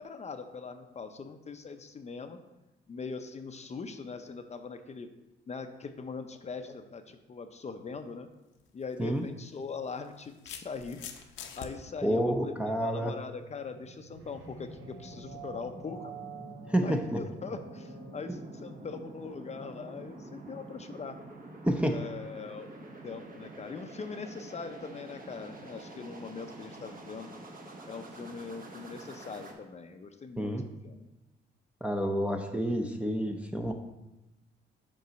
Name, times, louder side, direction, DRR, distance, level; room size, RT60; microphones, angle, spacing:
voice 1, 0.0-2.4 2.9-5.1 5.5-8.3 8.7-11.1 11.6-16.2 16.8-21.2 21.9-22.7 23.0-27.3 27.9-30.6 30.8-31.1, left 4 dB, 35° left, 7 dB, 0.6 m, -41 dB
sound 1, 8.5-8.7 9.8-11.7, left 7 dB, 80° left, 0.8 m, -44 dB
voice 2, 12.0-13.1 16.7-17.2 21.6-22.0 30.4-30.6 31.8-33.7, equal, 5° right, 2 dB, 0.6 m, -29 dB
sound 2, 13.1-29.5, right 2 dB, 45° right, 1.3 m, -47 dB
sound 3, 14.1-19.6, right 5 dB, 80° right, 0.9 m, -49 dB
5.4 x 5.4 x 5.1 m, 0.99 s
cardioid pair, 90°, 20 cm